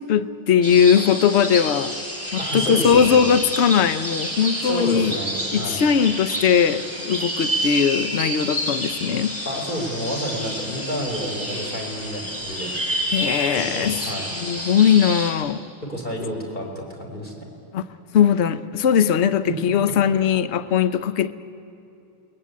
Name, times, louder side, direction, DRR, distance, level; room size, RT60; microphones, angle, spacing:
voice 1, 0.0-1.9 2.3-5.2 5.5-9.4 13.1-14.0 14.4-15.6 17.7-17.8 18.1-21.3, left 8 dB, 75° left, 14 dB, 0.6 m, -19 dB
sound 1, 0.6-15.3, equal, 5° left, 5.5 m, -29 dB
voice 2, 2.4-3.2 4.6-5.8 9.4-12.7 13.5-14.2 15.8-17.3 19.4-19.5, equal, 20° left, 0 dB, 5.0 m, -30 dB
28.5 x 22.0 x 8.4 m, 2.9 s
omnidirectional pair, 2.1 m